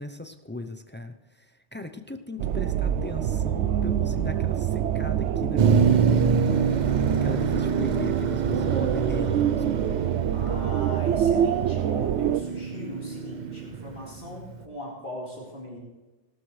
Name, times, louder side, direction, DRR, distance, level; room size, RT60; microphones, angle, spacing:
voice 1, 0.0-6.3 7.2-10.0, left 1 dB, 15° left, 7 dB, 0.3 m, -37 dB
sound 1, 2.4-12.4, right 10 dB, 75° right, 0.9 m, -26 dB
Motor vehicle (road), 5.6-14.5, right 6 dB, 50° right, 0.6 m, -26 dB
voice 2, 10.3-15.8, left 1 dB, 45° left, -5 dB, 4.2 m, -39 dB
18.5 x 12.5 x 3.2 m, 1.2 s
omnidirectional pair, 1.2 m